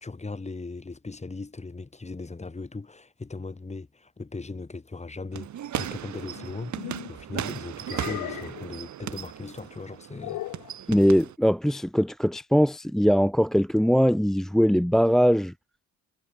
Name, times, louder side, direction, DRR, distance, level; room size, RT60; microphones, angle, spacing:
voice 1, 0.0-10.9, left 3 dB, 20° left, 4.6 m, -38 dB
sound 1, 5.3-11.3, right 11 dB, 70° right, 6.0 m, -36 dB
sound 2, 6.3-7.1 7.8-8.7 10.2-10.7, left 16 dB, 90° left, 2.7 m, -37 dB
voice 2, 10.9-15.5, equal, ahead, 0.5 m, -21 dB
cardioid pair, 90°, 30 cm